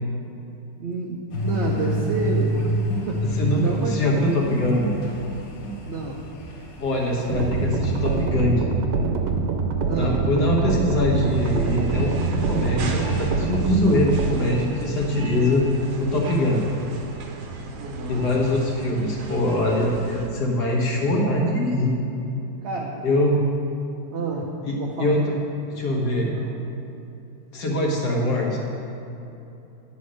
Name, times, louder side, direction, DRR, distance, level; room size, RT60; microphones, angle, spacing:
voice 1, 0.8-2.6 3.1-4.0 5.8-6.2 9.9-10.2 15.3-15.6 17.8-18.3 22.6-23.0 24.1-24.5 24.8-25.2 26.3-26.5, right 3 dB, 55° right, -2 dB, 0.8 m, -29 dB
sound 1, 1.3-8.3, equal, 85° left, 1.6 m, -28 dB
voice 2, 3.4-4.9 6.8-8.7 9.9-15.6 16.0-16.6 18.1-22.0 23.0-23.4 24.6-25.2 25.7-26.3 27.5-28.6, left 1 dB, 70° left, -2 dB, 1.8 m, -23 dB
sound 2, 7.3-14.3, right 5 dB, 90° right, 1.4 m, -25 dB
sound 3, 11.1-20.3, right 3 dB, 70° right, 1.3 m, -37 dB
9.9 x 4.2 x 6.3 m, 2.9 s
omnidirectional pair, 1.9 m